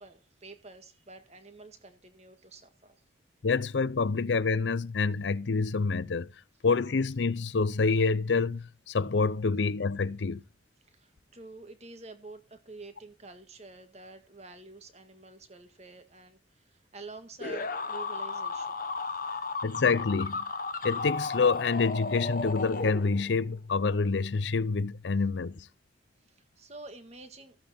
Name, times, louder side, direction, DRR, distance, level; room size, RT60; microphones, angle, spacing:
voice 1, 0.0-3.0 10.9-18.8 26.2-27.6, right 3 dB, 35° right, 1.8 m, -48 dB
voice 2, 3.4-6.3 6.6-10.4 19.6-20.4 20.8-25.7, left 4 dB, 80° left, 0.6 m, -27 dB
sound 1, 17.4-23.5, left 4 dB, 50° left, 1.1 m, -34 dB
15.0 x 8.7 x 4.3 m
head